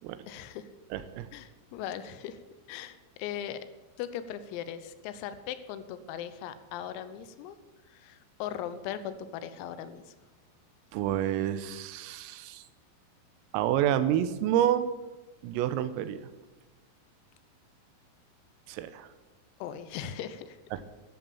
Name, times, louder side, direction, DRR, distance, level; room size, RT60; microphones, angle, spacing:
voice 1, 0.3-0.7 1.3-2.4 2.7-3.7 4.0-7.6 7.9-10.1 19.6-20.6, left 10 dB, 90° left, 12 dB, 3.6 m, -39 dB
voice 2, 0.9-1.3 10.9-12.6 13.5-14.9 15.4-16.3 18.7-19.1 20.7-20.8, right 11 dB, 85° right, 12 dB, 3.5 m, -28 dB
11.5 x 11.0 x 7.1 m, 1.2 s
omnidirectional pair, 5.9 m